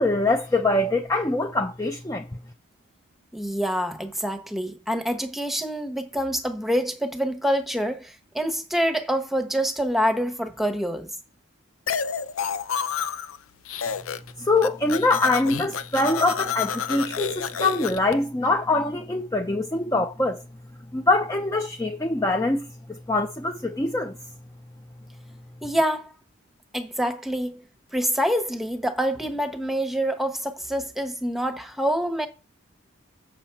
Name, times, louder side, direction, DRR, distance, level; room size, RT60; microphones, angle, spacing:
voice 1, 0.0-2.3 14.4-20.4 20.9-24.2, left 2 dB, 15° left, 0.5 m, -24 dB
voice 2, 3.3-11.1 25.6-26.1 26.7-27.6 27.9-32.3, equal, ahead, 1.0 m, -26 dB
sound 1, 11.9-13.4 13.7-14.3 14.6-18.1, left 7 dB, 90° left, 0.6 m, -29 dB
7.3 x 6.1 x 4.5 m
head